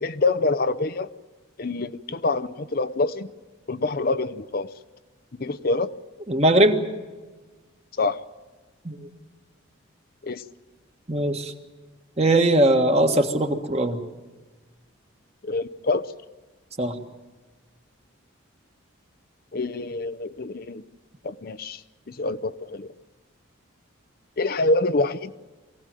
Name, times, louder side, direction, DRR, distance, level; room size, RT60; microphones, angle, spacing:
voice 1, 0.0-1.1 1.6-3.3 3.7-4.7 5.4-5.9 8.0-8.2 10.2-10.4 15.4-16.1 19.5-20.8 21.2-21.8 22.1-22.9 24.4-25.3, left 3 dB, 45° left, 11 dB, 0.6 m, -26 dB
voice 2, 6.3-6.8 8.8-9.1 11.1-11.5 12.2-14.0 16.8-16.9, right 1 dB, 30° right, 5 dB, 1.6 m, -20 dB
23.5 x 17.0 x 9.1 m, 1.3 s
head